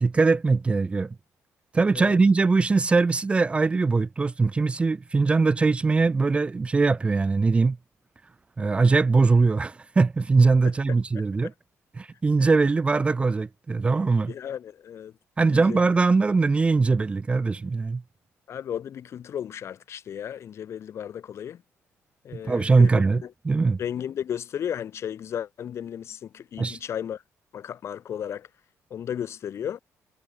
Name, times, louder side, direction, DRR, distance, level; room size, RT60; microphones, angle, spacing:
voice 1, 0.0-1.1 1.7-7.8 8.6-11.5 12.0-14.3 15.4-18.0 22.4-23.8 26.6-26.8, right 4 dB, 20° right, 0.7 m, -21 dB
voice 2, 14.3-15.1 15.5-15.9 18.5-21.6 22.2-22.9 23.2-23.3 23.8-27.2 27.5-28.5 28.9-29.8, left 9 dB, 55° left, 2.1 m, -34 dB
cardioid pair, 140°, 6 cm